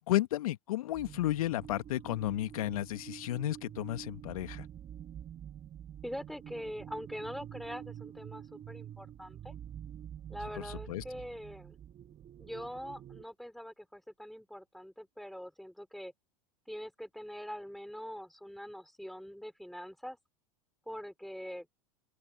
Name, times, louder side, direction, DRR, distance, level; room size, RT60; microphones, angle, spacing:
voice 1, 0.1-4.7 10.9-11.0, left 14 dB, 70° left, 1.8 m, -32 dB
sound 1, 0.9-13.2, right 10 dB, 35° right, 4.0 m, -47 dB
voice 2, 6.0-9.6 10.3-11.8 12.4-16.1 16.7-20.2 20.9-21.7, equal, ahead, 5.3 m, -43 dB
open air
hypercardioid pair, 90°, 19 cm